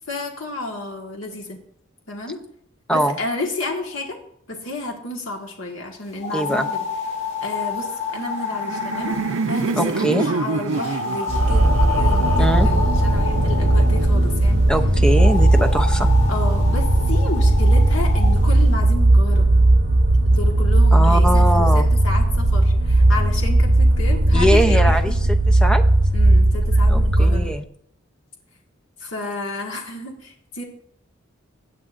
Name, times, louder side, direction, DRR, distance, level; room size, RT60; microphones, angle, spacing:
voice 1, 0.1-1.6 2.1-2.4 2.9-4.2 4.5-6.8 7.4-9.2 9.5-11.7 11.9-14.6 16.3-19.5 20.3-25.3 26.1-27.5 29.0-30.6, left 2 dB, 75° left, 0 dB, 1.7 m, -31 dB
sound 1, 6.2-10.1 10.7-14.0 15.1-18.3, left 5 dB, 35° left, 2.7 m, -29 dB
voice 2, 6.3-6.7 9.8-10.2 12.4-12.7 14.7-16.1 20.9-21.9 24.3-25.1 25.5-25.8 26.9-27.6, equal, 5° left, 7 dB, 0.7 m, -21 dB
Laughter, 8.1-13.2, right 4 dB, 85° right, 0.5 m, -27 dB
sound 2, 11.3-27.5, right 1 dB, 70° right, 1.1 m, -16 dB
16.5 x 8.5 x 2.6 m, 0.68 s
head